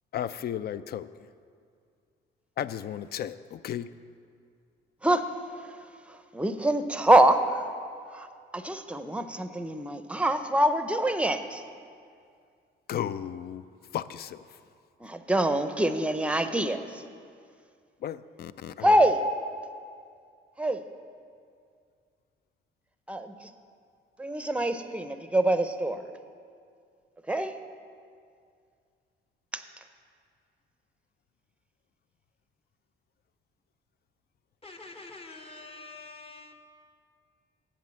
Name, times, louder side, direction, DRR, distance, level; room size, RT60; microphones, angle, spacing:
voice 1, 0.1-1.3 2.6-3.9 12.9-13.6 13.9-14.6 18.0-18.9, left 10 dB, 50° left, 15 dB, 0.4 m, -34 dB
voice 2, 6.1-7.6 8.1-8.3 8.5-11.6 15.0-17.0 18.8-19.2 20.6-20.8 23.1-23.5 24.2-26.1 27.3-27.5 29.5-29.6, right 1 dB, 5° right, 9 dB, 0.6 m, -25 dB
voice 3, 34.6-36.5, left 3 dB, 30° left, 5 dB, 1.0 m, -46 dB
8.2 x 7.4 x 7.5 m, 2.2 s
cardioid pair, 90°, 20 cm